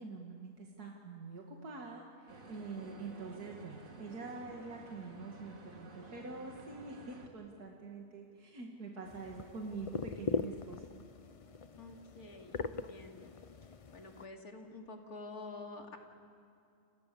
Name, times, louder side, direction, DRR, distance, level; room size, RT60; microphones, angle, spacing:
voice 1, 0.0-10.8, right 3 dB, 90° right, 0 dB, 2.7 m, -45 dB
sound 1, 2.3-7.3, right 2 dB, 60° right, 2.7 m, -53 dB
sound 2, 9.0-14.3, left 4 dB, 55° left, 0.3 m, -41 dB
voice 2, 11.7-13.3 13.9-16.0, left 3 dB, 75° left, 2 dB, 3.0 m, -48 dB
30.0 x 28.0 x 6.9 m, 2.5 s
omnidirectional pair, 1.6 m